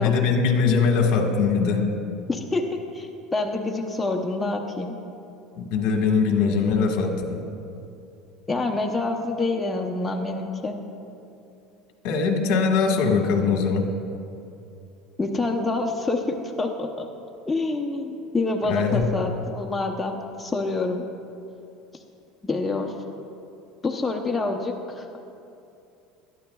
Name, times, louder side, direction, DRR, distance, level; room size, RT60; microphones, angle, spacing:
voice 1, 0.0-1.9 5.6-7.4 12.0-13.9 18.6-19.1, left 5 dB, 70° left, 2 dB, 1.6 m, -21 dB
voice 2, 2.3-5.0 8.5-10.8 15.2-17.1 17.5-21.1 22.4-22.9 23.8-25.3, left 2 dB, 10° left, 2 dB, 0.8 m, -27 dB
20.5 x 13.0 x 2.3 m, 2.6 s
supercardioid pair, 130°, 0 cm